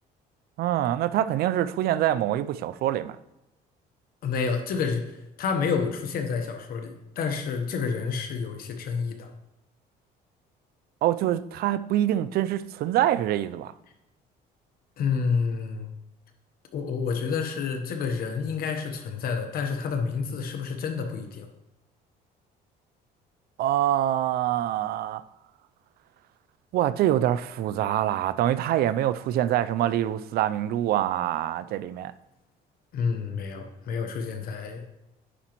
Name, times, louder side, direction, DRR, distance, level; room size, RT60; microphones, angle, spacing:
voice 1, 0.6-3.2 11.0-13.7 23.6-25.2 26.7-32.1, right 12 dB, 65° right, 0.4 m, -25 dB
voice 2, 4.2-9.3 15.0-15.9 16.7-21.5 32.9-34.9, left 5 dB, 60° left, 1.0 m, -29 dB
10.0 x 5.0 x 3.0 m
cardioid pair, 110°, 17 cm